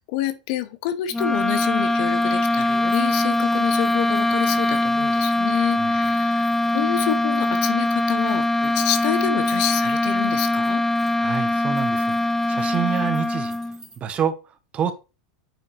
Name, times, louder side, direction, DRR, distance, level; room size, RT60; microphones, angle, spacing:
voice 1, 0.1-10.8, left 12 dB, 60° left, 0.9 m, -28 dB
sound 1, 1.1-13.8, left 1 dB, 10° left, 0.3 m, -22 dB
sound 2, 2.6-14.0, right 3 dB, 15° right, 2.4 m, -52 dB
voice 2, 11.2-13.6 14.0-14.9, right 8 dB, 35° right, 1.1 m, -27 dB
9.1 x 4.4 x 3.2 m
hypercardioid pair, 95°, 4 cm